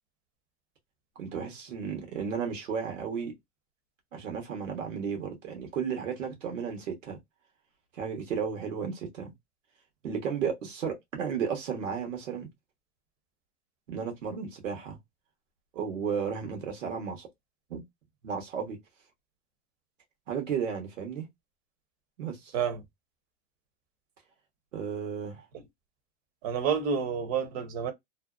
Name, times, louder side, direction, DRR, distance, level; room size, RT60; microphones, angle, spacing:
voice 1, 1.2-3.3 4.1-7.2 7.9-9.3 10.0-12.5 13.9-15.0 15.7-17.3 17.7-17.8 18.2-18.8 20.3-21.3 22.2-22.5 24.7-25.5, right 6 dB, 85° right, 1.2 m, -33 dB
voice 2, 26.4-27.9, right 7 dB, 55° right, 0.9 m, -29 dB
2.6 x 2.0 x 2.3 m
hypercardioid pair, 120°, 37 cm